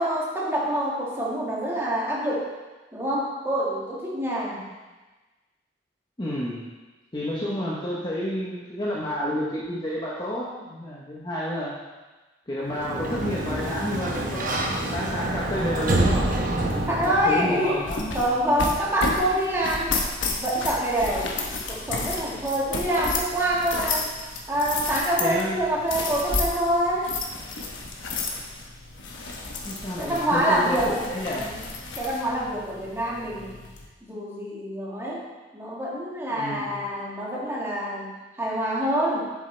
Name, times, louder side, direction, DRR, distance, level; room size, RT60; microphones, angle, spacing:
voice 1, 0.0-2.5 2.9-4.7 16.8-17.8 18.1-19.9 20.4-21.3 21.7-24.1 24.5-27.2 30.0-31.6 31.9-33.6 34.1-35.2 35.5-39.3, right 1 dB, 15° right, -5 dB, 1.7 m, -26 dB
voice 2, 6.2-6.7 7.1-11.8 12.5-16.3 16.7-18.1 25.2-25.6 29.6-31.5 36.3-36.7, equal, 25° left, -6 dB, 1.0 m, -30 dB
Sliding door, 12.7-17.5, right 1 dB, 45° right, 1.0 m, -27 dB
sound 1, 16.7-33.9, left 3 dB, 90° left, 1.1 m, -32 dB
8.0 x 7.2 x 3.3 m, 1.2 s
head